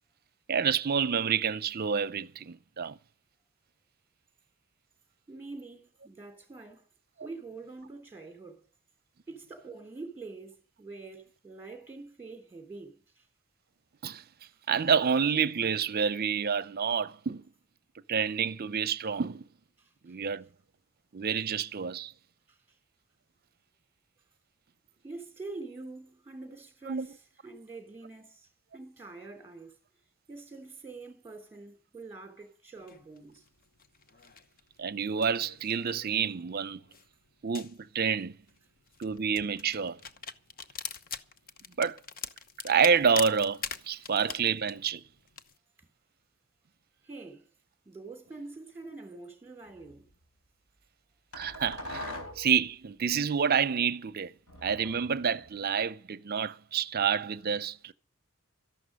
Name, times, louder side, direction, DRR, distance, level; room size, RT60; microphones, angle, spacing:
voice 1, 0.5-3.0 14.0-14.2 14.7-17.5 18.1-19.4 20.0-20.5 21.1-22.1 26.9-27.1 34.8-36.8 37.4-38.4 39.0-40.0 41.8-42.0 42.6-45.0 51.3-52.0 52.4-54.3 54.6-57.9, right 6 dB, 45° right, 0.6 m, -28 dB
voice 2, 5.3-6.9 7.2-8.6 9.3-13.3 19.8-19.9 22.5-22.6 25.0-27.2 27.4-28.5 28.7-29.8 30.3-33.4 47.0-47.5 47.8-50.0, right 3 dB, 10° right, 2.9 m, -45 dB
sound 1, 32.8-45.6, left 6 dB, 45° left, 0.9 m, -43 dB
sound 2, 49.7-50.0 51.3-52.6 54.5-55.7, left 1 dB, 80° left, 4.0 m, -42 dB
13.5 x 11.5 x 6.5 m
head